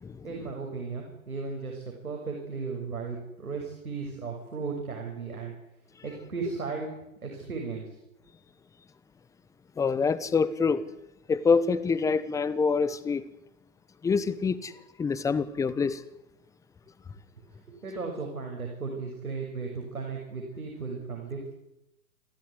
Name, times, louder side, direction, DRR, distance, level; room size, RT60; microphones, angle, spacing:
voice 1, 0.2-5.5 6.0-6.9 7.2-8.0 17.8-21.5, right 4 dB, 85° right, 6.6 m, -35 dB
voice 2, 9.8-10.8 11.3-13.2 14.0-14.7 15.0-16.0, left 5 dB, 10° left, 1.0 m, -26 dB
28.5 x 13.0 x 9.8 m
figure-of-eight pair, 125°, 42 cm